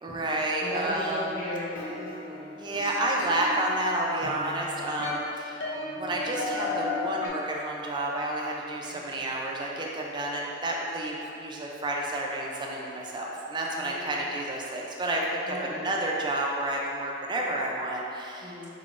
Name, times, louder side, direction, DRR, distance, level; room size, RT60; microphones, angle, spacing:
voice 1, 0.0-1.3 2.6-5.6 5.9-18.7, right 1 dB, 25° right, -2 dB, 0.4 m, -30 dB
voice 2, 0.6-2.6 8.9-9.0 13.8-14.1 15.5-15.8 18.4-18.7, equal, 60° left, -13 dB, 0.9 m, -36 dB
sound 1, 1.7-7.3, left 3 dB, 85° left, 0.7 m, -35 dB
3.7 x 3.7 x 2.5 m, 2.7 s
head